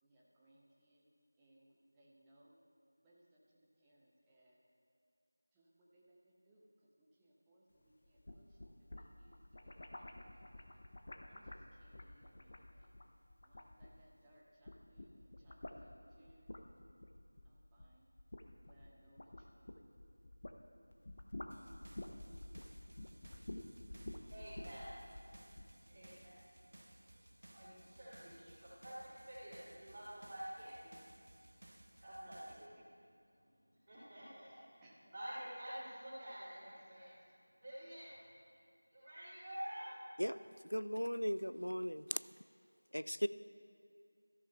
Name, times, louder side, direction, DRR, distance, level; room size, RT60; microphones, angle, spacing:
voice 1, 0.0-1.1 1.4-2.6 3.0-4.6 5.5-10.8 11.3-12.9 13.4-16.9 17.4-18.1 18.6-19.6 31.8-31.9 32.5-32.9 34.8-35.1, right 1 dB, 10° right, -6 dB, 0.6 m, -69 dB
sound 1, 8.0-14.3 14.6-20.6 20.9-25.7, left 1 dB, 40° left, 0.6 m, -51 dB
sound 2, 21.5-32.7, right 1 dB, 50° right, 0.7 m, -61 dB
voice 2, 23.2-27.0 27.4-31.0 32.0-32.7 33.9-34.6 35.1-37.1 37.6-38.2 38.9-39.9, equal, 25° right, -13 dB, 3.1 m, -50 dB
voice 3, 40.7-42.2 42.9-43.3, equal, 85° left, 14 dB, 0.3 m, -37 dB
17.5 x 13.5 x 2.3 m, 2.3 s
figure-of-eight pair, 170°, 0 cm